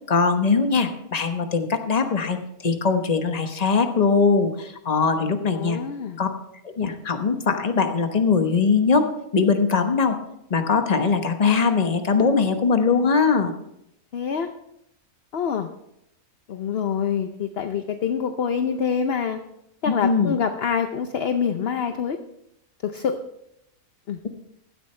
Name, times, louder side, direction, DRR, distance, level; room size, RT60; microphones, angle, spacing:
voice 1, 0.1-5.8 6.2-6.3 6.6-9.1 9.3-10.2 10.5-13.5 19.9-20.3, left 5 dB, 30° left, 7 dB, 1.1 m, -21 dB
voice 2, 5.6-6.2 14.1-14.5 15.3-15.7 16.5-19.4 19.8-22.2 22.8-23.2 24.1-24.2, left 7 dB, 55° left, 8 dB, 0.8 m, -26 dB
16.5 x 12.5 x 3.3 m, 0.80 s
omnidirectional pair, 1.6 m